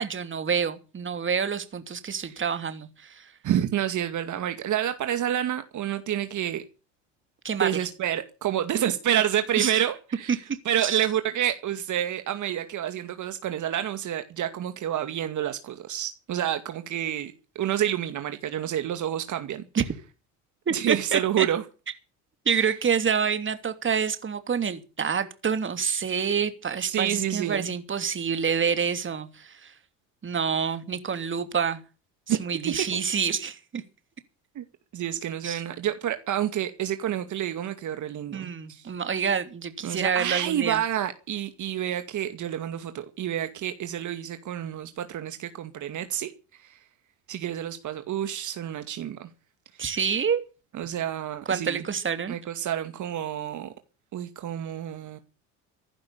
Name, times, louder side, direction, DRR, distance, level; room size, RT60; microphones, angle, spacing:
voice 1, 0.0-3.3 7.4-7.9 9.6-9.8 10.8-11.0 19.8-19.9 20.7-21.5 22.4-29.7 30.2-31.8 32.3-33.8 35.4-35.6 38.3-40.8 49.8-50.4 51.5-52.4, right 6 dB, 30° right, 2.9 m, -27 dB
voice 2, 3.4-6.6 7.6-10.4 10.7-19.6 20.7-21.6 22.5-22.6 26.8-27.7 32.3-32.4 32.7-32.9 34.6-34.7 34.9-38.9 39.8-46.3 46.6-46.8 47.3-49.3 50.7-51.9 52.3-53.7 54.1-55.2, right 11 dB, 50° right, 2.2 m, -29 dB
15.5 x 11.5 x 6.9 m
supercardioid pair, 80°, 37 cm